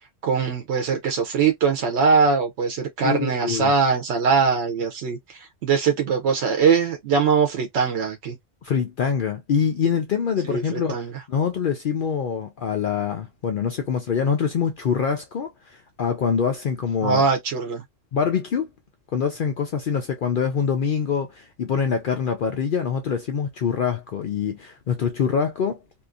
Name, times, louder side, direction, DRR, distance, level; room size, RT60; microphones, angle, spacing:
voice 1, 0.2-8.3 10.4-11.2 17.0-17.8, right 5 dB, 90° right, 0.9 m, -22 dB
voice 2, 3.0-3.7 8.6-17.2 18.1-18.7 19.1-25.8, left 6 dB, 60° left, 0.7 m, -25 dB
2.7 x 2.5 x 2.3 m
omnidirectional pair, 1.1 m